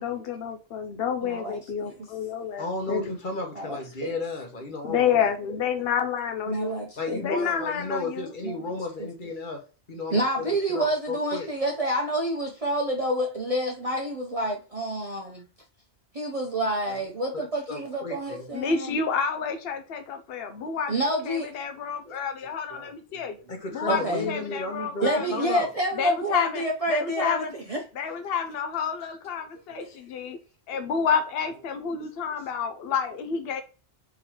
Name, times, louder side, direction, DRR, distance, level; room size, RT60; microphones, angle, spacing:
voice 1, 0.0-3.2 4.8-6.8 7.1-8.3 18.5-20.9 21.2-23.4 23.7-25.5 26.0-26.6 26.9-27.5 28.0-30.4 30.7-33.6, left 7 dB, 65° left, 0.9 m, -29 dB
voice 2, 1.2-1.9 3.6-4.2 6.5-7.2 8.4-8.6 9.0-9.1 10.1-15.4 16.1-18.9 20.9-21.5 22.1-22.2 22.7-23.3 23.9-24.4 25.0-27.8 29.8-29.9, right 1 dB, 40° right, 0.7 m, -28 dB
voice 3, 2.6-5.2 7.0-9.6 9.9-11.5 16.9-17.0 17.3-18.5 23.5-25.7 29.0-29.2, left 2 dB, 50° left, 1.3 m, -34 dB
4.6 x 3.9 x 3.0 m
omnidirectional pair, 1.1 m